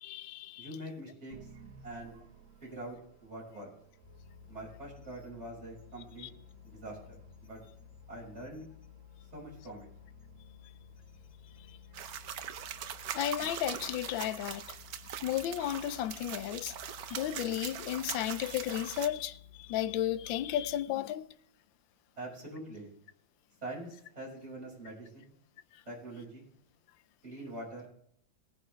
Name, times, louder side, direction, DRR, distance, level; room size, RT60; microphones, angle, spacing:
voice 1, 0.0-0.7 6.2-6.3 11.7-11.8 13.1-14.6 15.2-16.7 17.1-21.3, left 12 dB, 80° left, 1.4 m, -34 dB
voice 2, 0.6-1.5 1.8-2.1 2.6-3.7 4.5-6.3 6.6-7.2 7.4-7.6 8.1-8.7 9.3-9.9 22.2-22.9 23.6-25.3 25.9-26.5 27.2-27.9, right 1 dB, 35° right, 6.3 m, -44 dB
sound 1, 1.3-13.5, right 6 dB, 90° right, 2.2 m, -60 dB
sound 2, 4.0-20.8, left 9 dB, 25° left, 1.3 m, -55 dB
sound 3, 11.9-19.1, right 9 dB, 60° right, 1.1 m, -42 dB
18.5 x 10.0 x 3.4 m
omnidirectional pair, 2.1 m